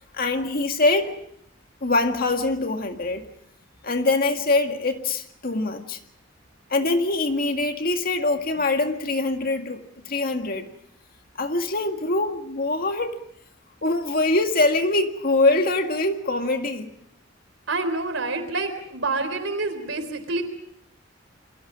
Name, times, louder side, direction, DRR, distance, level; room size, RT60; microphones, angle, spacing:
voice 1, 0.1-1.2 1.8-3.3 3.8-6.0 6.7-10.7 11.4-13.2 13.8-16.9, left 2 dB, 50° left, 5 dB, 1.9 m, -23 dB
voice 2, 17.7-20.4, right 3 dB, 75° right, 8 dB, 3.8 m, -27 dB
29.0 x 23.5 x 5.1 m, 0.71 s
head